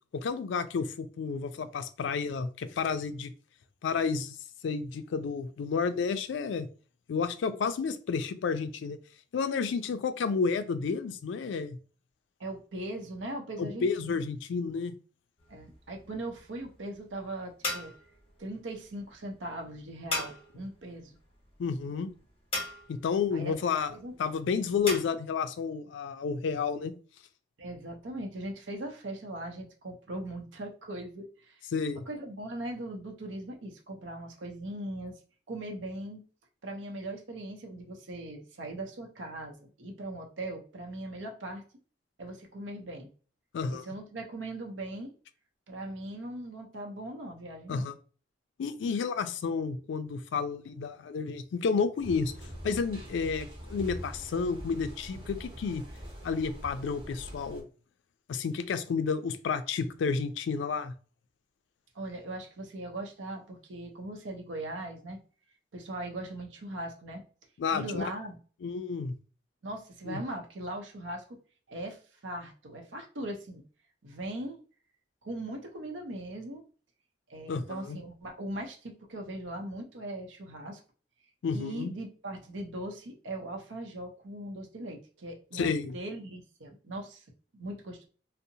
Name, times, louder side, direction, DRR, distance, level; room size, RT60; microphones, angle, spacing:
voice 1, 0.1-3.3 3.8-4.4 4.6-6.7 7.1-9.0 9.3-11.8 13.6-15.0 21.6-22.1 22.9-26.9 31.7-32.0 43.5-43.9 47.7-47.9 48.6-52.3 52.6-55.8 56.2-57.7 58.3-60.9 67.6-68.0 68.6-69.2 70.0-70.2 77.5-78.0 81.4-81.9 85.5-86.0, left 5 dB, 75° left, 11 dB, 0.3 m, -31 dB
voice 2, 12.4-14.2 15.5-17.9 18.4-21.2 23.3-23.6 23.9-24.1 27.6-31.6 32.1-35.2 35.5-36.2 36.6-41.6 42.2-43.1 43.7-45.1 45.7-47.9 61.9-65.2 65.7-67.2 67.7-68.4 69.6-71.4 71.7-73.6 74.0-74.6 75.2-76.6 77.3-80.8 81.5-87.2 87.5-88.1, right 1 dB, 85° right, 3 dB, 0.6 m, -39 dB
sound 1, 15.4-25.0, left 2 dB, 30° left, 0.7 m, -40 dB
sound 2, 52.0-57.6, equal, 25° right, 0.6 m, -43 dB
2.7 x 2.0 x 2.6 m, 0.38 s
head